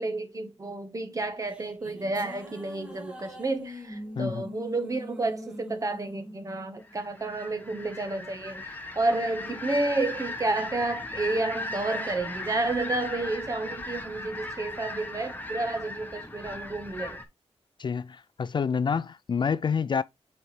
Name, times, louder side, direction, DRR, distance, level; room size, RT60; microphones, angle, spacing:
voice 1, 0.0-17.2, right 2 dB, 30° right, 1.2 m, -30 dB
sound 1, 1.2-7.7, left 1 dB, 10° right, 1.7 m, -44 dB
voice 2, 4.2-4.5 17.8-20.0, left 6 dB, 45° left, 0.3 m, -28 dB
sound 2, 6.8-17.2, left 2 dB, 15° left, 1.2 m, -38 dB
7.9 x 4.3 x 3.2 m
cardioid pair, 90°, 11 cm